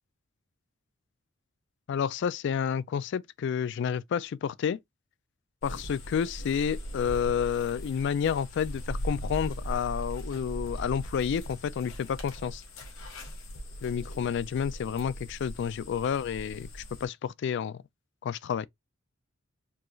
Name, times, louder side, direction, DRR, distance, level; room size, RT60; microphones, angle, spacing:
voice 1, 1.9-4.8 5.6-12.6 13.8-17.8 18.2-18.7, left 7 dB, 60° left, 0.3 m, -30 dB
sound 1, 5.6-17.0, equal, 80° left, 1.4 m, -39 dB
4.7 x 3.1 x 2.3 m
head